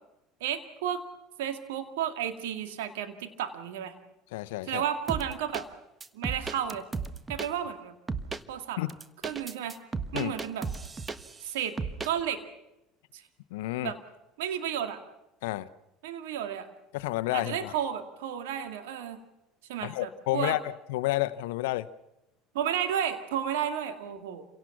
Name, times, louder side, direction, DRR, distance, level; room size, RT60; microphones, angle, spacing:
voice 1, 0.4-1.0 1.4-3.9 4.7-5.7 6.1-6.8 7.3-8.0 8.5-8.8 9.2-9.8 10.1-10.7 11.4-11.8 12.0-12.4 13.1-13.2 13.8-14.0 14.4-15.0 16.0-16.7 17.3-19.2 19.7-20.6 22.5-24.5, right 9 dB, 80° right, 8 dB, 2.1 m, -32 dB
voice 2, 4.3-4.8 8.8-8.9 10.1-10.3 13.5-13.9 15.4-15.7 16.9-17.7 19.8-21.9, left 17 dB, 75° left, 12 dB, 0.8 m, -30 dB
sound 1, 5.1-5.6 6.0-7.5 8.1-8.4 8.9-11.5 11.8-12.1, right 4 dB, 25° right, 1.3 m, -34 dB
28.0 x 17.5 x 5.9 m, 0.90 s
hypercardioid pair, 80°, 0 cm